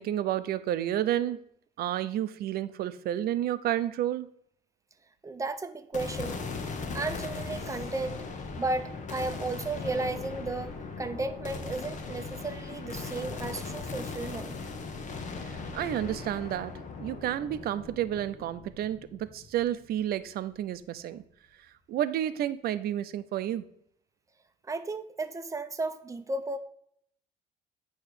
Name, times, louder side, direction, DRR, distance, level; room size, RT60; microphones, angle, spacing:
voice 1, 0.0-1.4 1.8-4.3 15.4-16.7 17.0-21.2 21.9-23.6, right 11 dB, 65° right, 13 dB, 0.6 m, -31 dB
voice 2, 5.2-6.4 6.9-8.2 8.6-14.6 24.7-26.6, right 3 dB, 20° right, 10 dB, 0.7 m, -34 dB
sound 1, 5.9-20.2, left 4 dB, 45° left, 1.2 m, -39 dB
8.9 x 3.1 x 6.6 m, 0.68 s
cardioid pair, 110°, 17 cm